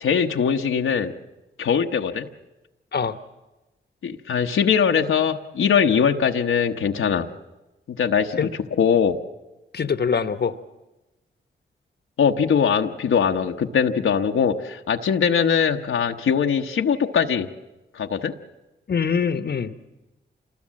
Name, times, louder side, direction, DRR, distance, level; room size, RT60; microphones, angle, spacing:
voice 1, 0.0-1.1 1.6-2.3 4.0-7.3 7.9-8.5 8.8-9.2 12.2-17.5 17.9-18.3, left 7 dB, 80° left, 3 dB, 1.0 m, -21 dB
voice 2, 9.7-10.6 18.9-19.7, left 6 dB, 55° left, 12 dB, 1.0 m, -23 dB
27.0 x 20.5 x 7.5 m, 1.1 s
cardioid pair, 50°, 21 cm